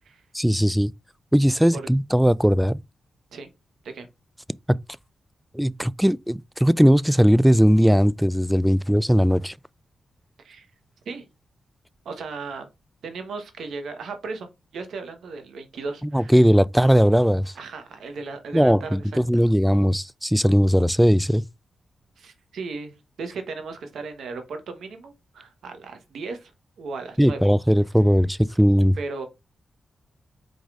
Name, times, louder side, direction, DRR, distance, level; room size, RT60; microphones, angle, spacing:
voice 1, 0.3-0.9 1.3-2.8 5.5-9.5 16.1-17.5 18.5-21.4 27.2-29.0, equal, 5° right, 0.3 m, -19 dB
voice 2, 12.0-12.7 13.0-14.5 14.7-16.3 17.5-19.4 22.2-26.5 26.8-27.5 29.0-29.3, right 4 dB, 80° right, 1.1 m, -36 dB
4.7 x 4.0 x 2.4 m
cardioid pair, 50°, 0 cm